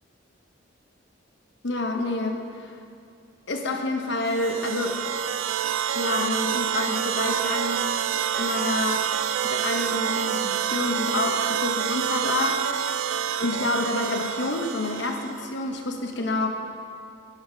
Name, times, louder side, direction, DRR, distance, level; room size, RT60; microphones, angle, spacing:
voice 1, 1.6-2.7 3.5-5.0 5.9-7.9 8.4-9.1 9.4-12.9 13.4-16.5, left 2 dB, 65° left, 3 dB, 0.9 m, -28 dB
sound 1, 4.2-15.4, right 9 dB, 80° right, 0.3 m, -27 dB
12.0 x 5.5 x 5.0 m, 2.4 s
head